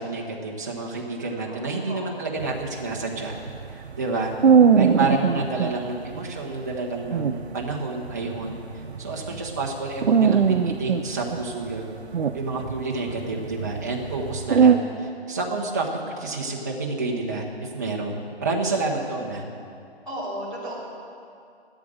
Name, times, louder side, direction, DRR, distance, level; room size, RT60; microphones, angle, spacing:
voice 1, 0.0-3.3 3.7-4.3 4.8-8.6 9.0-11.8 12.3-15.9 16.2-19.4, right 3 dB, 15° right, -2 dB, 1.0 m, -29 dB
voice 2, 1.5-2.3 20.0-20.7, right 1 dB, 5° left, -16 dB, 3.9 m, -35 dB
sound 1, 2.4-5.7 6.1-6.2 6.7-6.8 7.0-9.7 10.0-11.8 12.1-14.8, right 6 dB, 75° right, 0.8 m, -21 dB
15.0 x 12.5 x 6.5 m, 2.5 s
hypercardioid pair, 175°, 33 cm